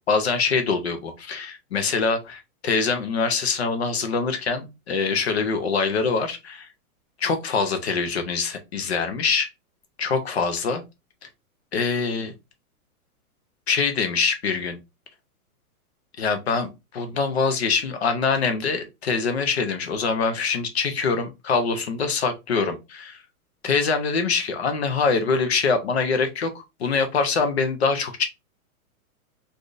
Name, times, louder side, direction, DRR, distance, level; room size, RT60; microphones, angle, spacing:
voice 1, 0.1-6.7 7.2-9.5 10.0-10.8 11.7-12.3 13.7-14.8 16.2-16.7 16.9-23.2 23.6-28.2, left 5 dB, 45° left, 7 dB, 0.7 m, -24 dB
3.4 x 2.6 x 2.5 m, 0.24 s
hypercardioid pair, 180°, 44 cm